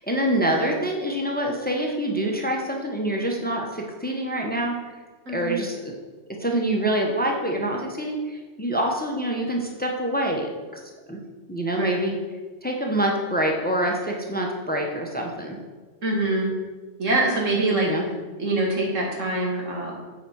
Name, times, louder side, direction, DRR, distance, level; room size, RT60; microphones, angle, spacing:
voice 1, 0.0-4.7 5.3-5.9 6.4-10.8 11.1-11.2 11.5-12.1 12.6-15.6 17.7-18.1, right 1 dB, 10° left, 1 dB, 1.0 m, -26 dB
voice 2, 16.0-16.5 17.0-17.9 18.4-19.9, right 2 dB, 85° right, -2 dB, 2.5 m, -24 dB
8.6 x 4.9 x 6.3 m, 1.3 s
omnidirectional pair, 1.3 m